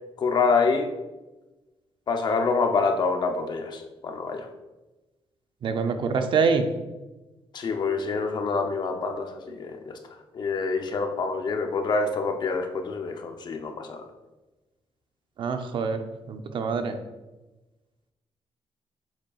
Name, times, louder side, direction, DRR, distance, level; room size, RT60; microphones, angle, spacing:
voice 1, 0.2-0.9 2.1-4.5 7.5-10.0 10.3-14.1, left 4 dB, 45° left, 5 dB, 0.6 m, -26 dB
voice 2, 5.6-6.7 15.4-16.0 16.3-17.0, right 5 dB, 50° right, 7 dB, 0.5 m, -25 dB
7.5 x 7.2 x 2.4 m, 1.1 s
wide cardioid pair, 180°, 11 cm